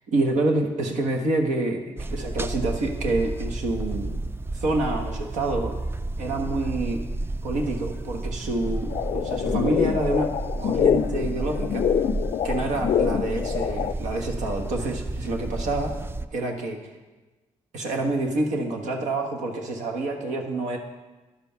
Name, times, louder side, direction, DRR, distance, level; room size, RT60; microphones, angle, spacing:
voice 1, 0.1-5.8 6.2-7.0 7.4-11.9 12.4-16.0 16.3-16.8 17.7-20.8, right 2 dB, 80° right, 2 dB, 1.4 m, -27 dB
sound 1, 2.0-16.3, right 2 dB, 20° right, 0.4 m, -32 dB
sound 2, 8.9-13.9, left 8 dB, 60° left, 0.4 m, -25 dB
11.5 x 5.3 x 5.8 m, 1.2 s
cardioid pair, 75°, 12 cm